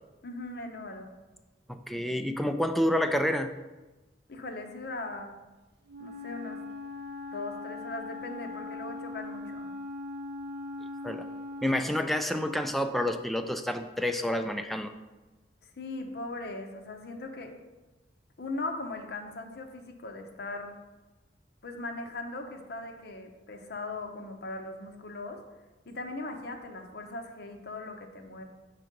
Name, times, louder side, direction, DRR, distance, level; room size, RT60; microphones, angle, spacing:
voice 1, 0.2-1.1 4.3-5.4 6.0-6.6 7.3-9.7 15.8-17.5 18.4-20.8 21.6-25.4 25.9-28.4, left 2 dB, 65° left, 4 dB, 0.7 m, -39 dB
voice 2, 1.7-3.5 11.0-11.2 11.6-14.9, left 1 dB, ahead, 7 dB, 0.3 m, -29 dB
Wind instrument woodwind instrument, 5.9-11.9, left 3 dB, 65° right, 0.6 m, -40 dB
5.8 x 3.7 x 5.2 m, 1.1 s
head